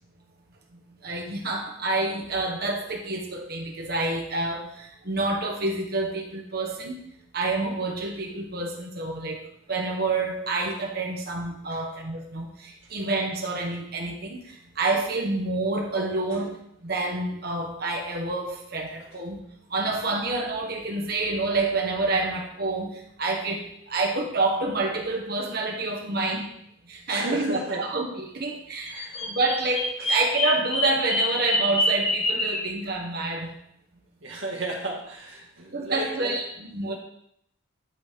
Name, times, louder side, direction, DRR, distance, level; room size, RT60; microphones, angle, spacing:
voice 1, 1.0-7.0 7.3-9.4 9.7-14.4 14.8-16.5 16.8-19.4 19.7-22.9 23.2-26.5 26.9-33.5 35.7-37.0, right 2 dB, 45° right, 1 dB, 1.3 m, -28 dB
voice 2, 27.1-27.9 28.9-29.3 30.0-30.1 34.2-36.4, right 2 dB, 65° right, -2 dB, 1.9 m, -34 dB
Bird vocalization bird call bird song, 28.8-32.7, left 1 dB, 25° left, 1.3 m, -26 dB
11.0 x 4.1 x 3.6 m, 0.72 s
head